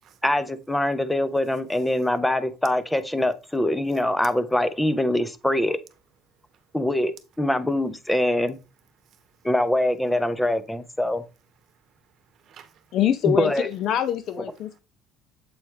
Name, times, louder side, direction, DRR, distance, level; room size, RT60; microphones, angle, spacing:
voice 1, 0.2-5.8 6.7-8.6 9.4-11.2 13.3-13.7, left 1 dB, 5° left, 0.7 m, -24 dB
voice 2, 6.4-6.8 9.0-9.5 11.6-13.0, right 9 dB, 50° right, 1.1 m, -57 dB
voice 3, 12.9-14.8, left 10 dB, 55° left, 0.5 m, -24 dB
7.8 x 4.3 x 3.5 m
cardioid pair, 125°, 0 cm